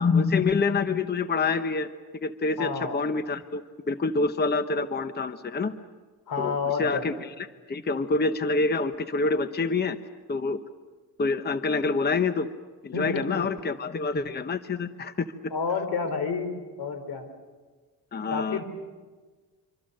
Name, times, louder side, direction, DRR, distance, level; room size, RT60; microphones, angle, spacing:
voice 1, 0.0-1.9 2.2-3.6 3.9-5.7 6.4-10.0 10.3-10.6 11.2-12.5 12.8-15.3 18.1-18.6, left 4 dB, 25° left, 10 dB, 0.9 m, -26 dB
voice 2, 2.6-3.0 6.3-7.1 12.9-13.5 15.5-16.5 16.8-17.3 18.3-18.6, left 5 dB, 75° left, 9 dB, 3.7 m, -30 dB
25.5 x 25.5 x 6.6 m, 1.4 s
cardioid pair, 105°, 38 cm